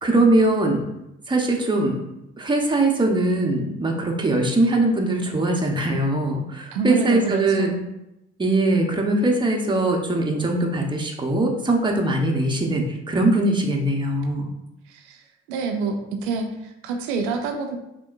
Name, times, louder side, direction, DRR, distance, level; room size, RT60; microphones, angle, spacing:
voice 1, 0.0-0.8 1.3-2.0 2.4-7.7 8.4-14.5, right 2 dB, 15° right, 0 dB, 1.0 m, -21 dB
voice 2, 6.7-7.7 14.9-15.2 15.5-16.0 16.2-17.8, right 4 dB, 80° right, 4 dB, 0.6 m, -27 dB
6.1 x 3.0 x 2.6 m, 0.89 s
hypercardioid pair, 50°, 34 cm